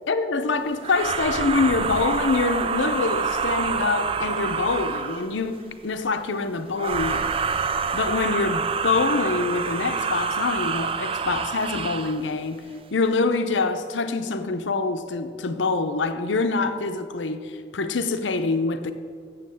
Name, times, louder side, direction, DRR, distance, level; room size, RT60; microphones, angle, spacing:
voice 1, 0.1-7.6 7.9-12.7 12.9-18.9, left 3 dB, 85° left, 0.7 m, -25 dB
sound 1, 0.8-5.4 6.7-12.2, right 5 dB, 30° right, 0.3 m, -27 dB
7.7 x 7.5 x 7.6 m
head